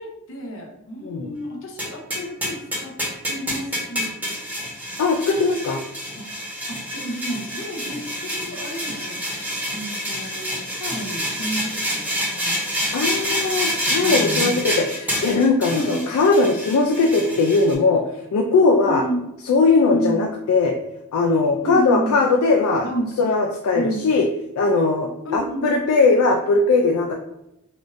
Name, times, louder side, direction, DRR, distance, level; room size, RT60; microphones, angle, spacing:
voice 1, 0.0-2.9 3.3-4.1 6.2-6.3 6.7-9.2 9.7-12.0 12.3-12.6 14.0-14.6 15.7-16.1 18.8-19.2 19.9-20.2 21.6-22.1 22.8-23.3 23.7-24.0 25.2-25.6, right 1 dB, 60° left, 0 dB, 0.7 m, -31 dB
sound 1, 1.8-17.7, equal, 10° right, 1.0 m, -27 dB
voice 2, 5.0-5.8 12.9-18.0 18.3-19.0 19.5-20.7 21.1-22.9 23.2-24.3 24.6-27.1, left 3 dB, 75° left, 2 dB, 0.3 m, -19 dB
3.5 x 2.5 x 2.5 m, 0.86 s
head